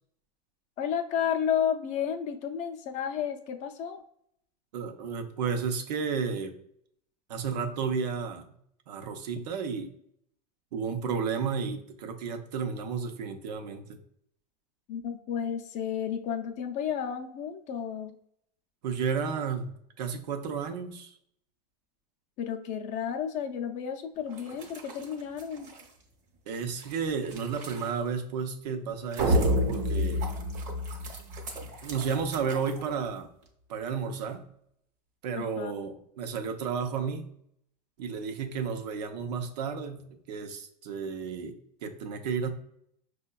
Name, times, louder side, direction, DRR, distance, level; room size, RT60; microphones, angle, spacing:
voice 1, 0.8-4.0 14.9-18.2 22.4-25.7 35.4-35.7, left 8 dB, 35° left, 5 dB, 0.5 m, -32 dB
voice 2, 4.7-6.5 7.3-8.6 8.9-9.9 10.7-14.0 18.8-21.1 26.5-30.3 31.8-33.3 33.7-34.5 35.2-37.4 38.0-42.5, right 6 dB, 80° right, 6 dB, 0.6 m, -32 dB
sound 1, 24.2-28.3 28.8-33.5, right 4 dB, 35° right, 0.8 m, -46 dB
sound 2, 29.2-31.6, equal, 60° right, 1.0 m, -27 dB
5.4 x 2.2 x 2.2 m, 0.71 s
supercardioid pair, 130°, 21 cm